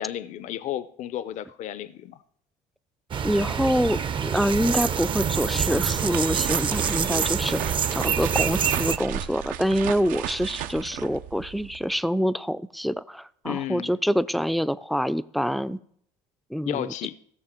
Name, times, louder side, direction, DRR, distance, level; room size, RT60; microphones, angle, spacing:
voice 1, 0.0-2.2 13.4-13.9 16.7-17.1, left 11 dB, 60° left, 15 dB, 0.6 m, -32 dB
sound 1, 3.1-9.0, right 7 dB, 35° right, 0.7 m, -26 dB
voice 2, 3.2-15.8 16.5-16.9, equal, ahead, 15 dB, 0.5 m, -26 dB
sound 2, 5.7-12.0, right 11 dB, 70° right, 0.8 m, -35 dB
16.0 x 6.5 x 5.0 m, 0.66 s
supercardioid pair, 90°, 14 cm